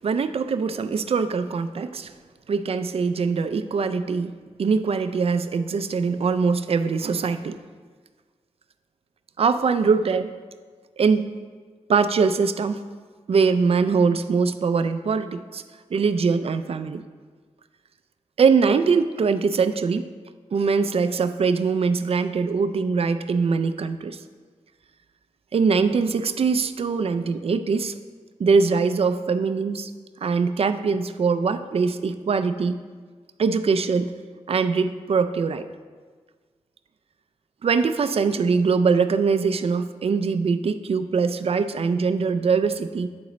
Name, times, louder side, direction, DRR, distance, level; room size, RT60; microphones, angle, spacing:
voice 1, 0.0-2.1 2.5-4.3 4.6-7.6 9.4-10.3 11.0-11.3 11.9-12.8 13.3-15.6 15.9-17.0 18.4-20.1 20.5-24.2 25.5-28.0 28.4-29.9 30.2-32.8 33.4-34.1 34.5-35.6 37.6-43.1, right 5 dB, 50° right, 10 dB, 0.4 m, -22 dB
9.4 x 3.8 x 3.1 m, 1.5 s
cardioid pair, 45°, 12 cm